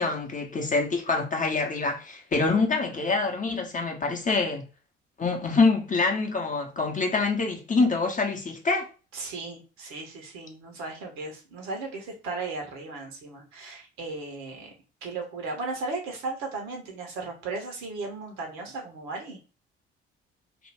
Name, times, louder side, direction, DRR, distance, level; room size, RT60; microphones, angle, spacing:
voice 1, 0.0-4.7 5.2-8.9, left 3 dB, 25° left, 0.8 m, -25 dB
voice 2, 9.1-14.7 15.0-19.4, right 3 dB, 60° right, 1.0 m, -36 dB
2.6 x 2.3 x 3.3 m
figure-of-eight pair, 45°, 32 cm